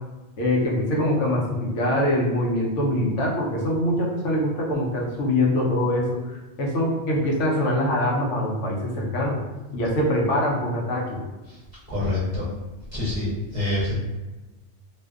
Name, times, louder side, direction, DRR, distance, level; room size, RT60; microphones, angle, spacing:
voice 1, 0.4-9.4 9.7-11.2, left 1 dB, 80° left, -2 dB, 0.9 m, -23 dB
voice 2, 11.9-12.4 12.9-14.0, left 2 dB, 45° right, -10 dB, 0.7 m, -26 dB
2.5 x 2.2 x 2.3 m, 1.2 s
omnidirectional pair, 1.3 m